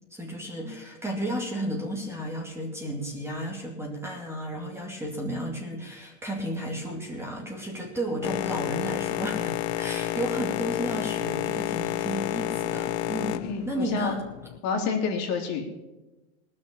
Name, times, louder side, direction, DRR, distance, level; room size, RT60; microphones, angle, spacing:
voice 1, 0.1-14.2, equal, 5° right, 0 dB, 2.4 m, -33 dB
Boat Water vehicle, 8.2-14.6, left 14 dB, 65° left, 0.7 m, -30 dB
voice 2, 13.5-14.1 14.6-15.8, left 5 dB, 50° left, 2 dB, 2.8 m, -29 dB
18.5 x 6.5 x 8.4 m, 1.1 s
supercardioid pair, 130°, 35 cm